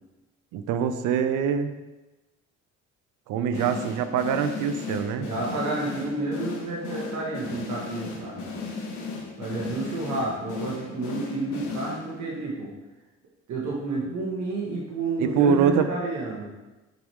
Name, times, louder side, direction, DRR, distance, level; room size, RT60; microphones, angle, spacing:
voice 1, 0.5-1.7 3.3-5.3 15.2-15.9, right 7 dB, 85° right, 10 dB, 0.6 m, -24 dB
sound 1, 3.5-12.3, left 4 dB, 85° left, 1.5 m, -36 dB
voice 2, 5.2-8.5 9.4-12.7 13.5-16.6, right 2 dB, 70° right, -5 dB, 1.9 m, -30 dB
9.0 x 4.7 x 3.6 m, 1.1 s
cardioid pair, 90°, 30 cm